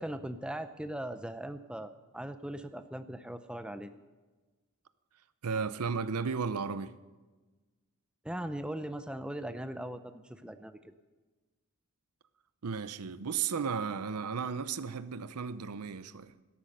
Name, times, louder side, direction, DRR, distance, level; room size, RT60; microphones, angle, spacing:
voice 1, 0.0-3.9 8.2-10.9, right 1 dB, 5° right, 0.5 m, -39 dB
voice 2, 5.4-6.9 12.6-16.3, right 5 dB, 85° right, 0.6 m, -34 dB
13.0 x 12.5 x 6.6 m
head